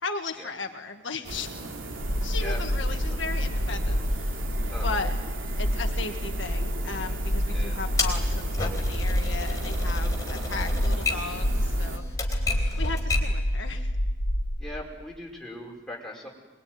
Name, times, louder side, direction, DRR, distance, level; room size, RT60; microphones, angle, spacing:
voice 1, 0.0-1.5 2.2-5.1 5.6-12.0 12.8-13.9, left 4 dB, 65° left, 4 dB, 1.7 m, -36 dB
sound 1, 1.2-12.0, right 2 dB, 85° right, 2.8 m, -38 dB
sound 2, 2.0-14.6, equal, 85° left, 2.0 m, -28 dB
voice 2, 4.7-5.1 7.5-7.8 14.6-16.3, left 1 dB, 5° left, -3 dB, 5.3 m, -40 dB
Typewriter, 8.0-13.4, left 3 dB, 20° left, 3.9 m, -32 dB
24.0 x 22.0 x 9.4 m, 1.2 s
head